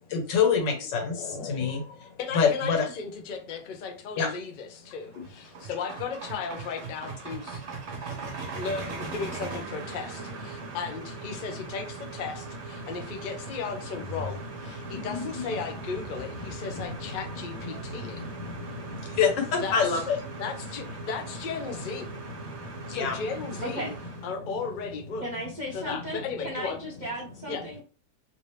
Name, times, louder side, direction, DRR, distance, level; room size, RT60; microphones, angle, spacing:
voice 1, 0.1-2.8 4.2-4.3 5.2-5.3 12.8-12.9 14.8-15.3 16.4-17.2 17.7-20.4 22.4-23.2, left 6 dB, 85° left, 4 dB, 1.6 m, -28 dB
voice 2, 2.2-7.6 8.5-18.2 19.6-19.8 20.4-22.1 22.9-23.9 24.2-25.2 25.7-26.8 27.5-27.6, left 5 dB, 65° left, 3 dB, 0.4 m, -35 dB
sound 1, 4.9-24.3, right 3 dB, 50° right, 1.1 m, -40 dB
voice 3, 25.2-27.8, equal, 70° right, -2 dB, 0.4 m, -36 dB
3.3 x 2.8 x 3.2 m, 0.38 s
omnidirectional pair, 1.9 m